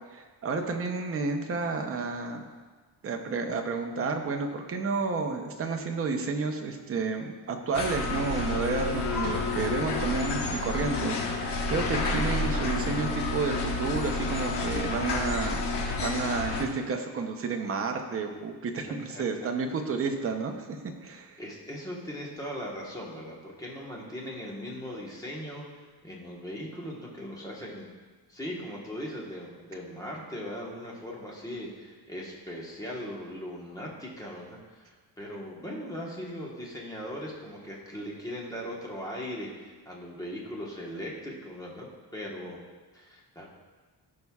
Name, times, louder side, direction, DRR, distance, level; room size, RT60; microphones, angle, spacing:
voice 1, 0.1-2.4 3.0-15.6 16.0-20.8 21.0-21.4, right 4 dB, 35° right, 4 dB, 0.7 m, -31 dB
sound 1, 7.7-16.6, left 3 dB, 90° left, 1.3 m, -30 dB
voice 2, 21.4-27.9 28.3-42.6 42.9-43.5, equal, 10° left, -3 dB, 1.2 m, -39 dB
15.5 x 5.4 x 2.4 m, 1.4 s
cardioid pair, 175°, 40 cm